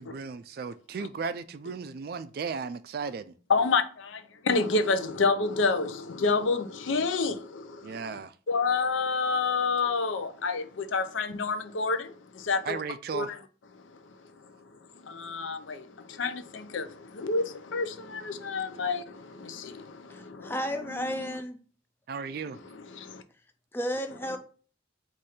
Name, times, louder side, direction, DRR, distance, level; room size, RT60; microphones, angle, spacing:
voice 1, 0.0-3.3 7.8-8.3 12.6-13.3 22.1-22.6, right 5 dB, 50° right, 0.3 m, -35 dB
voice 2, 3.5-3.8 4.5-5.9 6.2-7.3 8.5-10.6 10.9-12.0 12.5-12.8 13.1-13.2 15.3-15.6 16.2-16.3 16.7-16.8 17.3-17.4 17.7-17.8 18.5-19.0, left 4 dB, 80° left, 0.6 m, -26 dB
voice 3, 20.1-21.6 23.7-24.4, equal, 10° left, 0.4 m, -33 dB
4.2 x 2.6 x 4.8 m
head